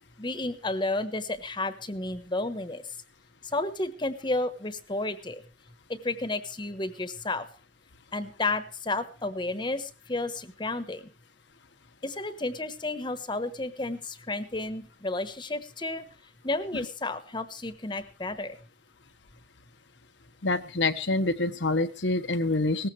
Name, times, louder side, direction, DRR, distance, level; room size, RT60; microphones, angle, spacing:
voice 1, 0.2-2.9 3.4-5.4 5.9-7.5 8.1-11.0 12.0-16.1 16.4-18.6, left 2 dB, 25° left, 11 dB, 1.2 m, -32 dB
voice 2, 20.4-22.9, left 2 dB, 90° left, 9 dB, 1.3 m, -26 dB
18.0 x 15.0 x 3.2 m, 0.33 s
head